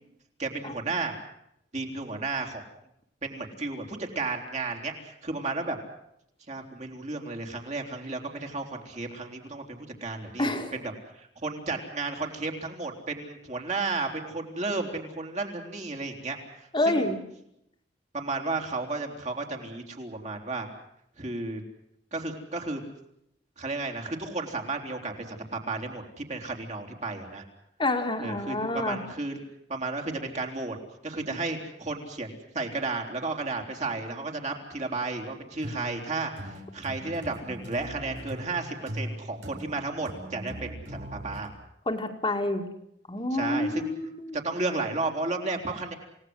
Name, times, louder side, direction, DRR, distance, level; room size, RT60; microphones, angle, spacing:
voice 1, 0.4-1.2 1.7-2.6 3.2-5.8 6.5-17.0 18.1-20.7 21.2-21.6 22.1-22.8 23.6-27.4 28.2-29.4 29.7-30.8 31.0-41.5 43.3-44.0 44.3-45.9, right 3 dB, 40° right, 2 dB, 3.7 m, -33 dB
voice 2, 10.4-10.7 16.7-17.1 27.8-29.0 41.9-42.6 43.1-44.4, left 1 dB, 30° left, 3 dB, 2.4 m, -28 dB
sound 1, 35.6-41.5, equal, 80° right, 4.6 m, -40 dB
28.5 x 18.0 x 8.0 m, 0.77 s
head